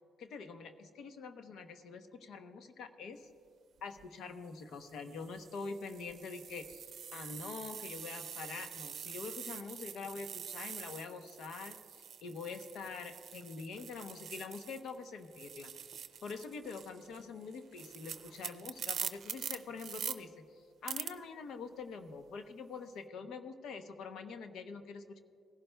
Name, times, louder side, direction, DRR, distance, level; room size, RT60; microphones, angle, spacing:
voice 1, 0.2-3.3 3.8-15.7 16.2-25.2, left 4 dB, 75° left, 8 dB, 0.7 m, -45 dB
sound 1, 3.8-4.0 4.8-15.0 15.2-20.2 20.9-21.1, right 8 dB, 65° right, 0.6 m, -45 dB
18.0 x 11.5 x 2.2 m, 2.4 s
cardioid pair, 90°, 0 cm